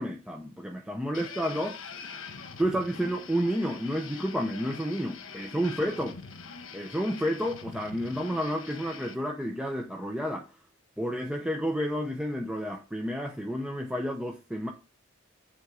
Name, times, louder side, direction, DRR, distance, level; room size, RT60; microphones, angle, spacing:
voice 1, 0.0-1.8 2.6-6.2 6.7-10.5 11.0-14.7, equal, 5° right, 0.7 m, -30 dB
sound 1, 1.1-9.2, left 5 dB, 80° left, 1.2 m, -44 dB
9.4 x 3.6 x 4.9 m
head